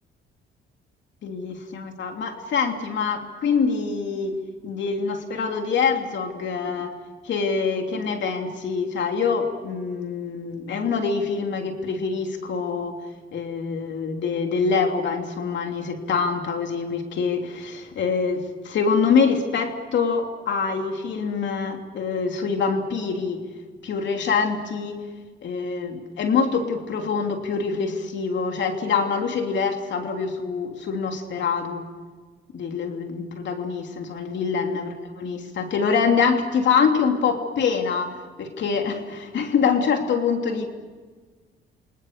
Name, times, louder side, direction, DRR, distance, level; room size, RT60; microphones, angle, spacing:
voice 1, 1.2-4.4 4.6-6.9 7.2-12.9 13.3-23.4 23.8-25.0 25.4-31.9 32.5-40.7, left 5 dB, 65° left, 4 dB, 3.0 m, -25 dB
29.0 x 25.5 x 6.7 m, 1.4 s
cardioid pair, 90°, 20 cm